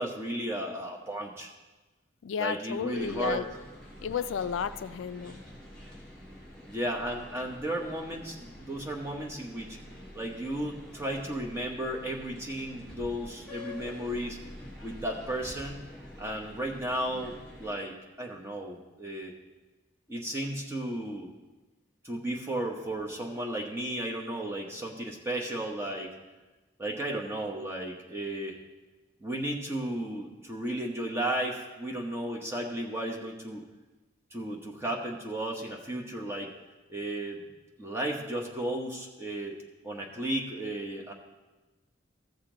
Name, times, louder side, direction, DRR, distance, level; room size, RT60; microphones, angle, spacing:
voice 1, 0.0-1.5 2.4-3.5 6.7-9.8 10.1-14.4 14.8-15.9 16.2-19.3 20.1-21.3 22.0-26.1 26.8-28.6 29.2-33.6 34.3-36.5 36.9-37.4 37.8-39.6 39.8-41.1, right 1 dB, 15° right, 0 dB, 1.1 m, -34 dB
voice 2, 2.2-3.5 4.0-5.4, left 7 dB, 80° left, 13 dB, 0.4 m, -32 dB
sound 1, 2.9-17.7, left 1 dB, 5° left, 2.8 m, -47 dB
14.5 x 6.7 x 3.9 m, 1.2 s
head